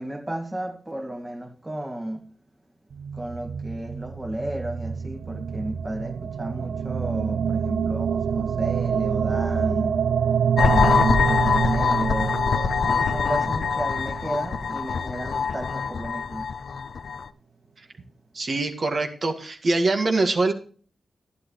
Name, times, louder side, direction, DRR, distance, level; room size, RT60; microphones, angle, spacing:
voice 1, 0.0-2.3 3.1-10.1 10.7-12.4 12.8-16.5, right 1 dB, 20° right, 2.0 m, -33 dB
sound 1, 2.9-15.2, right 7 dB, 80° right, 0.4 m, -27 dB
sound 2, 10.6-17.3, left 6 dB, 70° left, 0.5 m, -24 dB
voice 2, 18.3-20.5, right 3 dB, 50° right, 1.8 m, -23 dB
11.5 x 11.5 x 3.2 m
cardioid pair, 75°, 0 cm